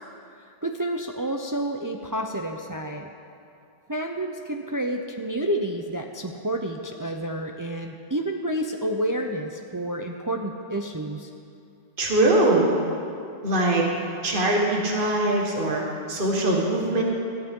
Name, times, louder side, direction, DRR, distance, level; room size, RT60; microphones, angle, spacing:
voice 1, 0.6-3.1 3.9-11.3, right 1 dB, 20° right, 3 dB, 0.6 m, -29 dB
voice 2, 12.0-12.7 13.4-13.9 14.2-17.0, right 2 dB, 55° right, -2 dB, 1.9 m, -22 dB
20.5 x 13.5 x 3.8 m, 2.5 s
omnidirectional pair, 1.1 m